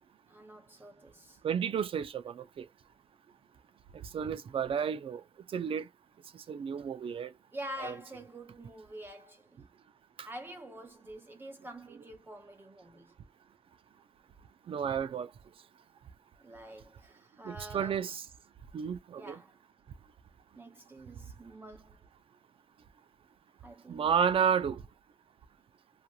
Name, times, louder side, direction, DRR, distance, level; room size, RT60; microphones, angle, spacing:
voice 1, 0.3-1.4 7.5-9.6 10.2-13.1 16.4-18.0 19.2-19.6 20.6-22.1 23.6-24.1, right 1 dB, 20° right, 0.7 m, -47 dB
voice 2, 1.4-2.7 4.0-5.2 5.5-5.9 6.3-7.3 7.8-7.9 10.2-10.3 14.7-15.3 17.4-18.3 18.7-19.4 23.9-24.8, right 7 dB, 60° right, 0.5 m, -31 dB
3.0 x 2.5 x 2.3 m
cardioid pair, 80°, 10 cm